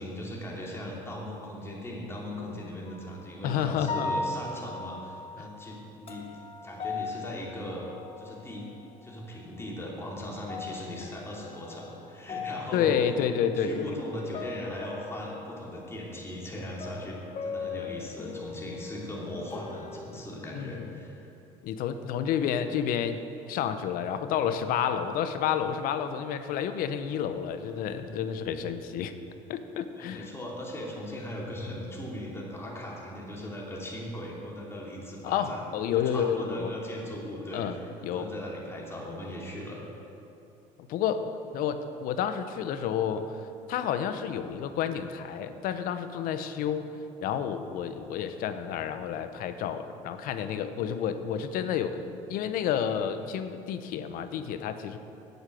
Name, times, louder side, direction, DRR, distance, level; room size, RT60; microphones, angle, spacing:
voice 1, 0.0-6.3 6.6-7.8 8.2-8.7 9.0-12.9 13.6-21.3 29.9-35.6 36.0-37.7 38.0-39.8, left 1 dB, 15° left, -3 dB, 2.8 m, -39 dB
sound 1, 2.9-3.3 3.8-8.7 9.0-9.8 10.2-20.0, left 4 dB, 40° left, 1.0 m, -39 dB
voice 2, 3.4-4.2 5.4-5.5 12.7-14.0 20.5-20.9 21.6-29.1 29.5-30.3 35.2-36.7 37.5-37.8 38.0-38.3 40.9-43.4 43.7-46.9 47.2-52.0 52.3-55.0, left 8 dB, 70° left, 10 dB, 0.8 m, -30 dB
8.3 x 8.0 x 7.6 m, 2.8 s
supercardioid pair, 90°, 15 cm